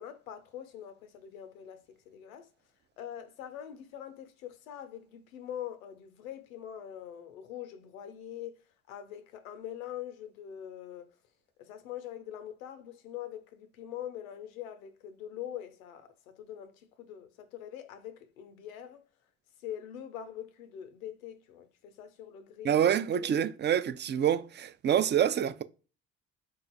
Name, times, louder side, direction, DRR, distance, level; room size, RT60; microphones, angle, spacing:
voice 1, 0.0-2.5 3.0-8.6 8.9-11.1 11.6-19.0 19.6-22.9, left 10 dB, 85° left, 0.6 m, -43 dB
voice 2, 22.6-25.6, right 9 dB, 25° right, 0.4 m, -27 dB
3.8 x 2.3 x 4.1 m
hypercardioid pair, 55°, 40 cm